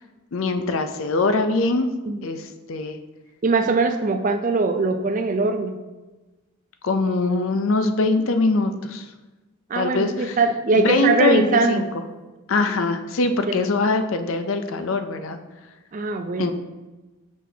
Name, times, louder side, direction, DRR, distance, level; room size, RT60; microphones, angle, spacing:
voice 1, 0.3-1.9 2.2-3.0 6.8-9.1 9.7-10.4 10.7-11.8 12.5-15.4 16.4-16.5, left 3 dB, 65° left, 8 dB, 0.5 m, -22 dB
voice 2, 3.4-5.8 9.7-11.9 13.5-13.7 15.9-16.5, right 3 dB, 35° right, 7 dB, 0.4 m, -21 dB
6.1 x 5.9 x 2.7 m, 1.2 s
head